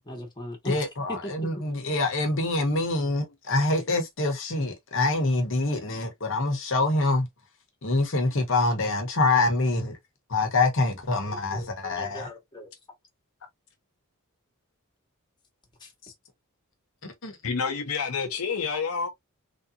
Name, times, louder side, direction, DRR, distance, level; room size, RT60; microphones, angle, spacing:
voice 1, 0.0-0.8 1.2-1.5 11.3-12.7, left 1 dB, 20° left, 1.3 m, -39 dB
voice 2, 0.6-7.3 7.8-10.0 10.3-12.3 17.2-17.3, left 2 dB, 60° left, 1.0 m, -25 dB
voice 3, 17.4-19.1, left 5 dB, 80° left, 0.8 m, -28 dB
3.4 x 2.7 x 2.5 m
head